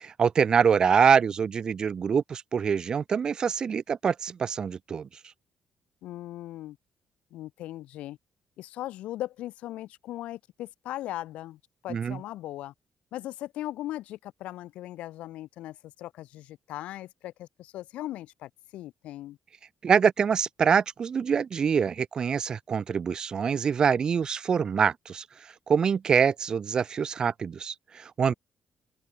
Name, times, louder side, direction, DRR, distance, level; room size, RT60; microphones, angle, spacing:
voice 1, 0.0-5.1 11.9-12.2 19.8-25.2 25.7-28.3, right 6 dB, 40° right, 0.3 m, -25 dB
voice 2, 6.0-6.8 7.3-8.2 8.6-12.7 13.1-19.4 28.3-28.4, left 14 dB, 90° left, 1.2 m, -38 dB
open air
cardioid pair, 125°, 2 cm